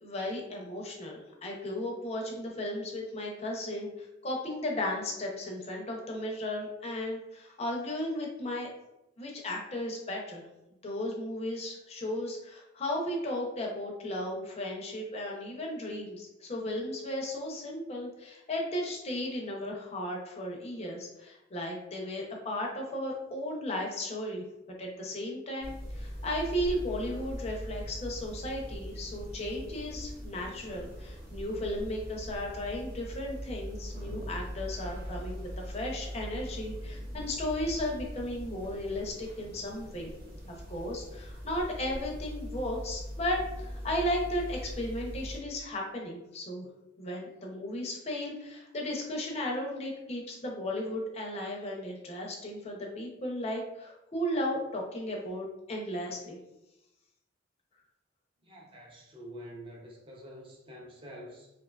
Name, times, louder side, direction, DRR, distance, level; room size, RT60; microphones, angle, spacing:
voice 1, 0.0-3.9 4.2-8.7 9.2-10.4 10.8-24.4 24.8-40.1 40.4-46.7 47.0-56.4, left 1 dB, 30° left, -1 dB, 0.5 m, -35 dB
sound 1, 25.6-45.4, equal, 50° right, 0.8 m, -41 dB
voice 2, 58.4-61.5, equal, 25° right, -2 dB, 0.5 m, -47 dB
2.6 x 2.2 x 2.2 m, 0.90 s
head